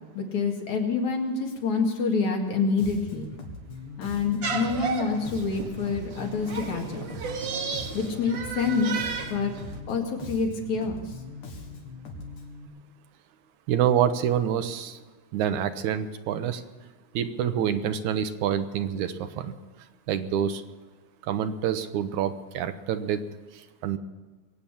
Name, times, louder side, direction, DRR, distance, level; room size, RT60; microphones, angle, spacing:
voice 1, 0.1-3.3 4.0-7.1 7.9-8.9 9.3-9.5 9.9-11.0, left 4 dB, 70° left, 1 dB, 3.5 m, -27 dB
Bass guitar, 2.8-12.7, left 3 dB, 90° left, 3.5 m, -41 dB
sound 1, 4.4-9.8, right 5 dB, 50° right, 1.5 m, -34 dB
voice 2, 13.7-15.0 15.3-16.6 17.1-19.5 20.1-20.6 21.2-23.2 23.8-24.0, right 9 dB, 80° right, 10 dB, 2.2 m, -27 dB
22.0 x 8.8 x 7.1 m, 1.3 s
omnidirectional pair, 3.4 m